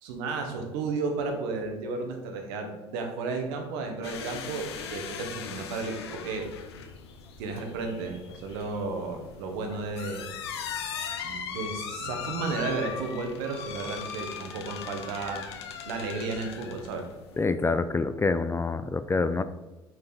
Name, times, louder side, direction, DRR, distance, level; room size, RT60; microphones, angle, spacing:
voice 1, 0.0-6.0 6.2-6.5 7.4-10.3 11.2-15.4 15.9-17.1, right 3 dB, 75° right, 4 dB, 1.1 m, -33 dB
sound 1, 4.0-17.4, left 7 dB, 85° left, 0.6 m, -39 dB
voice 2, 17.4-19.4, left 4 dB, 20° left, 12 dB, 0.3 m, -26 dB
5.3 x 4.6 x 3.9 m, 1.1 s
hypercardioid pair, 65°, 13 cm